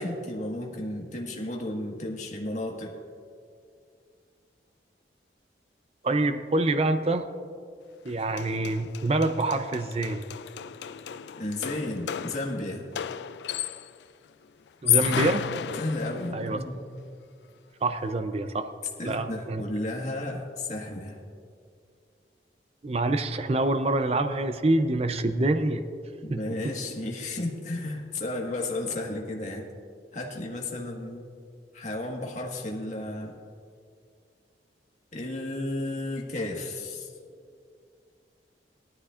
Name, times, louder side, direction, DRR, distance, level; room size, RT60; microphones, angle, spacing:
voice 1, 0.0-3.0 11.4-12.9 15.8-16.8 19.0-21.2 26.2-29.6 30.1-31.2 31.7-33.4 35.1-37.1, left 2 dB, 45° left, -1 dB, 1.6 m, -33 dB
voice 2, 6.0-7.3 8.0-10.2 14.8-15.5 16.3-16.6 17.8-18.7 19.0-19.6 22.8-25.8 26.3-26.4, right 2 dB, 35° right, 8 dB, 0.5 m, -26 dB
sound 1, 8.1-8.2 8.4-14.0 14.7-16.5, left 11 dB, 75° left, 0.4 m, -32 dB
18.5 x 13.0 x 2.5 m, 2.3 s
head